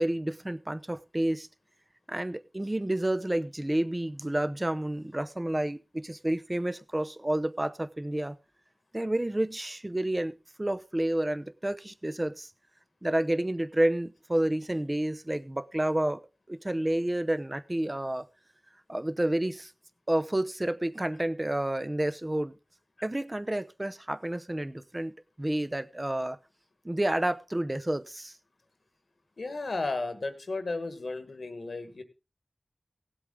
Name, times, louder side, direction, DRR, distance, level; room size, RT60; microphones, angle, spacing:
voice 1, 0.0-1.5 2.1-8.4 8.9-12.5 13.0-16.2 16.5-18.3 18.9-19.7 20.1-22.5 23.0-26.4 26.8-28.3, right 1 dB, 30° right, 0.8 m, -30 dB
voice 2, 29.4-32.0, left 3 dB, 90° left, 1.5 m, -34 dB
17.0 x 8.0 x 3.7 m
wide cardioid pair, 50°, 0 cm